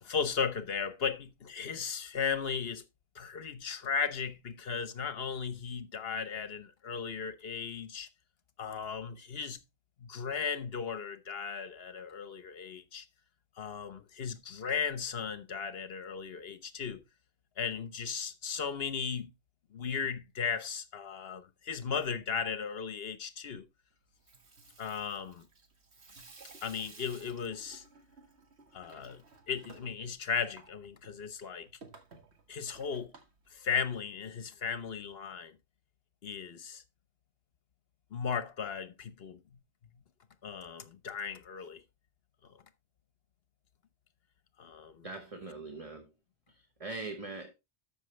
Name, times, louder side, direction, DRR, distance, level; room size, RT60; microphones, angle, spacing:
voice 1, 0.0-2.8 3.1-8.1 8.6-9.6 10.0-13.1 13.6-17.0 17.6-19.3 19.7-23.7 24.8-25.5 26.6-27.8 28.7-31.7 32.5-33.1 33.5-35.6 36.2-36.8 38.1-39.4 40.4-41.8 44.6-45.1, left 6 dB, 60° left, 1.2 m, -36 dB
Water tap faucet / Sink (filling or washing), 24.1-34.3, right 3 dB, 70° right, 2.0 m, -57 dB
voice 2, 45.0-46.1 46.5-47.5, right 3 dB, 30° right, 1.2 m, -42 dB
13.0 x 6.0 x 3.2 m
omnidirectional pair, 1.2 m